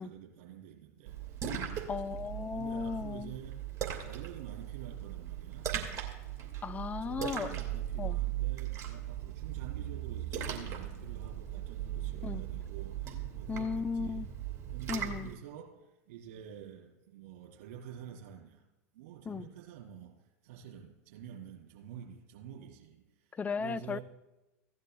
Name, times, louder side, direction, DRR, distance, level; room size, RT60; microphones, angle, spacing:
voice 1, 0.0-2.1 2.5-3.6 4.0-5.7 7.0-14.3 14.7-18.7 18.9-24.0, right 9 dB, 60° right, -3 dB, 4.0 m, -48 dB
Splash splatter, 1.1-15.3, right 10 dB, 35° right, 1.9 m, -38 dB
voice 2, 1.9-3.3 6.6-7.6 8.0-8.2 12.2-12.4 13.5-14.3 14.9-15.3 19.3-19.5 23.3-24.0, left 5 dB, 15° left, 14 dB, 0.4 m, -36 dB
16.5 x 11.0 x 2.3 m, 1.0 s
figure-of-eight pair, 85°, 9 cm